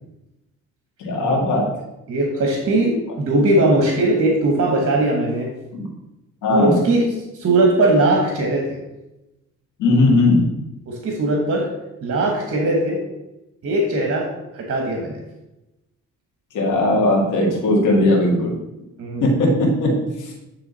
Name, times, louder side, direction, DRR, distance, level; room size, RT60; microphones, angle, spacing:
voice 1, 1.0-1.7 3.3-3.4 5.7-5.9 6.4-6.8 9.8-10.5 16.5-18.5 19.2-19.9 20.2-20.3, left 2 dB, 90° left, -2 dB, 1.9 m, -18 dB
voice 2, 2.1-5.5 6.5-7.0 7.3-8.8 10.9-11.7 12.0-13.0 13.6-14.3 14.5-15.2 19.0-19.3, right 2 dB, 50° right, 1 dB, 1.3 m, -19 dB
9.2 x 3.4 x 4.1 m, 0.95 s
cardioid pair, 90°, 30 cm